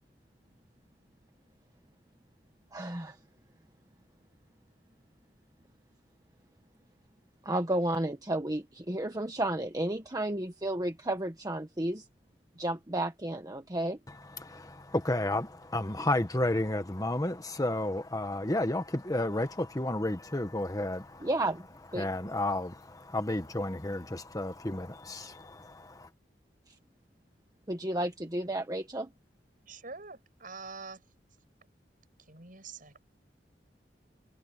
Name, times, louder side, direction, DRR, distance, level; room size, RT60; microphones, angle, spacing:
voice 1, 2.7-3.2 7.4-12.1 12.6-14.0 21.2-21.7 21.9-22.1 26.7-26.8 27.7-29.1, right 1 dB, 20° right, 1.4 m, -32 dB
voice 2, 14.4-21.3 22.0-26.1, left 1 dB, 20° left, 1.3 m, -32 dB
voice 3, 29.7-31.0 32.2-33.0, right 4 dB, 50° right, 7.7 m, -45 dB
head